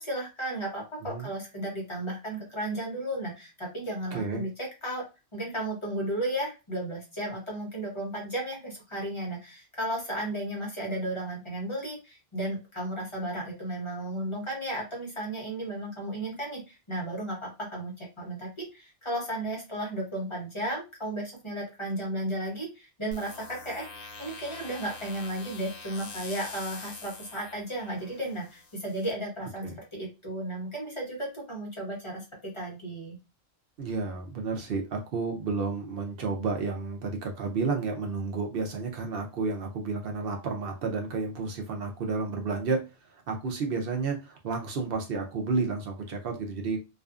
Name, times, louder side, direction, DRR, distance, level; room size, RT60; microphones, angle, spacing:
voice 1, 0.0-5.0 5.3-33.2, right 1 dB, 30° left, -3 dB, 0.9 m, -34 dB
voice 2, 4.1-4.4 29.6-29.8 33.8-42.8 43.1-46.8, right 4 dB, 65° right, 2 dB, 0.8 m, -31 dB
sound 1, 23.1-29.1, left 3 dB, 60° left, 0.8 m, -45 dB
2.5 x 2.4 x 2.3 m, 0.27 s
omnidirectional pair, 1.1 m